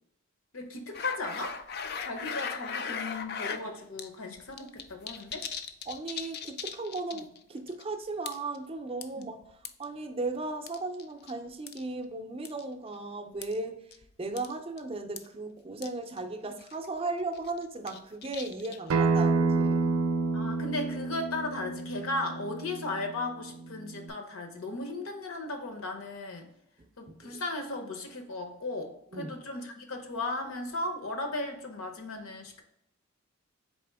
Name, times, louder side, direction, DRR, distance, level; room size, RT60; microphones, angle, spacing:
voice 1, 0.5-1.6 2.0-5.5 9.2-9.3 20.3-26.5 27.0-32.6, left 2 dB, 85° left, 5 dB, 0.8 m, -36 dB
sound 1, 0.9-3.6 4.0-4.1 4.4-7.4 7.7-7.8 8.3-8.6 9.0-9.8 10.7-11.3 11.7-11.8 12.4-12.6 13.4-13.6 13.9-14.0 14.4-14.5 14.8-14.9 15.2-15.3 15.8-15.9 16.2-16.3 16.6-16.9 17.3-18.9, left 6 dB, 50° left, 0.4 m, -38 dB
voice 2, 5.9-9.4 9.8-13.7 14.2-19.9 27.2-27.4 29.1-29.3, right 3 dB, 25° right, 6 dB, 0.4 m, -36 dB
Acoustic guitar, 18.9-24.1, right 3 dB, 90° right, 0.5 m, -29 dB
4.2 x 3.3 x 3.4 m, 0.78 s
head